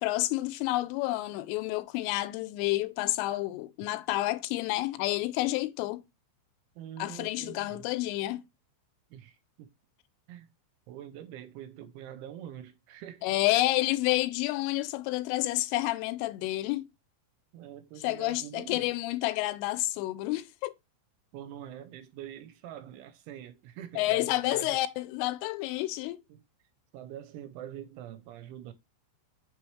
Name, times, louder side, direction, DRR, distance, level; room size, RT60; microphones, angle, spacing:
voice 1, 0.0-6.0 7.0-8.4 13.2-16.9 18.0-20.7 24.0-26.2, left 17 dB, 85° left, 3.1 m, -29 dB
voice 2, 6.8-7.9 9.1-9.7 10.3-10.5 10.9-13.3 17.5-18.9 21.3-24.8 26.3-26.4 26.9-28.7, right 11 dB, 80° right, 2.9 m, -45 dB
6.9 x 6.3 x 3.1 m
omnidirectional pair, 5.7 m